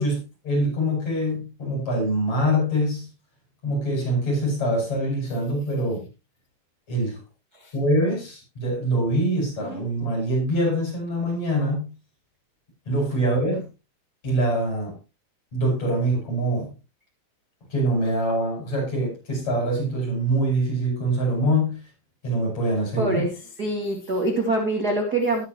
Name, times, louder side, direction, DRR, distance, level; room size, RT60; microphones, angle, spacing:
voice 1, 0.0-3.1 3.6-6.1 6.9-7.2 7.7-11.9 12.9-13.7 14.2-15.0 15.5-16.7 17.7-21.8 22.2-23.2, right 1 dB, 35° left, -1 dB, 8.7 m, -24 dB
voice 2, 23.0-23.3 23.6-25.4, right 2 dB, 35° right, 1 dB, 1.6 m, -24 dB
20.0 x 6.9 x 3.1 m, 0.27 s
omnidirectional pair, 5.2 m